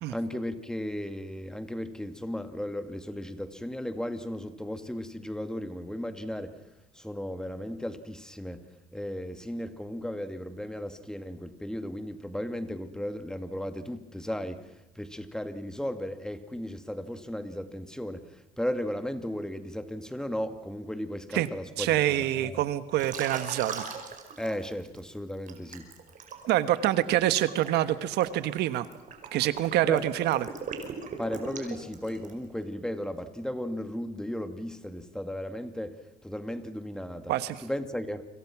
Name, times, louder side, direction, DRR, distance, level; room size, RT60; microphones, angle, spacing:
voice 1, 0.1-6.6 6.9-8.6 8.9-22.6 24.4-25.9 29.9-30.1 31.2-37.3 37.6-38.2, equal, 5° left, 8 dB, 2.2 m, -35 dB
voice 2, 21.8-23.9 26.5-28.9 29.3-30.5 37.3-37.6, right 13 dB, 80° right, 12 dB, 1.4 m, -26 dB
Liquid, 23.0-25.0 25.5-32.5, right 6 dB, 50° right, 5.3 m, -40 dB
30.0 x 26.0 x 6.1 m, 0.96 s
cardioid pair, 110°, 17 cm